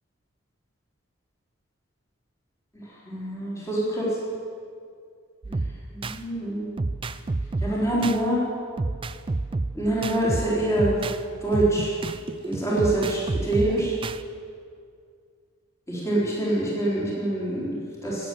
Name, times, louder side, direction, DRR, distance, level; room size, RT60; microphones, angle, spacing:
voice 1, 2.7-4.1 5.5-5.6 5.9-6.7 7.6-8.4 9.7-11.1 11.4-11.9 12.5-14.0 15.9-18.3, right 1 dB, 15° left, -7 dB, 3.9 m, -25 dB
sound 1, 5.4-6.2 6.8-8.2 8.8-11.2 11.5-14.2, right 3 dB, 25° right, 0.3 m, -29 dB
19.0 x 8.0 x 7.7 m, 2.2 s
head